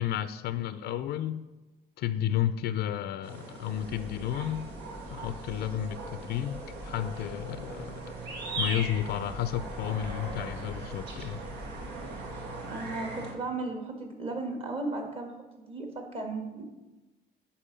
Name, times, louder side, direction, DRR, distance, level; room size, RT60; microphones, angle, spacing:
voice 1, 0.0-1.4 2.0-4.7 5.1-8.2 8.6-11.4, left 11 dB, 75° left, 12 dB, 0.4 m, -32 dB
sound 1, 3.2-13.3, right 2 dB, 80° right, 1.6 m, -40 dB
sound 2, 3.7-12.4, left 1 dB, 5° right, 1.0 m, -47 dB
voice 2, 12.7-16.6, right 2 dB, 35° right, 3 dB, 1.7 m, -35 dB
10.0 x 4.3 x 5.2 m, 1.1 s
cardioid pair, 110°, 17 cm